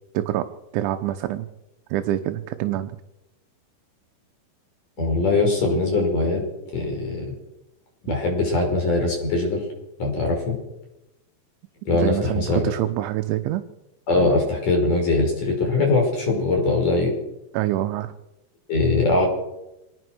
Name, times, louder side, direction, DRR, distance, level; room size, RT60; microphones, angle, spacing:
voice 1, 0.2-0.5 0.7-1.5 1.9-2.9 11.9-13.7 17.5-18.1, right 13 dB, 85° right, 7 dB, 3.5 m, -25 dB
voice 2, 5.0-6.4 6.7-7.3 8.0-9.6 10.0-10.5 11.9-12.7 14.1-17.1 18.7-19.3, left 3 dB, 45° left, 1 dB, 6.6 m, -21 dB
25.5 x 19.0 x 6.4 m, 0.92 s
omnidirectional pair, 5.3 m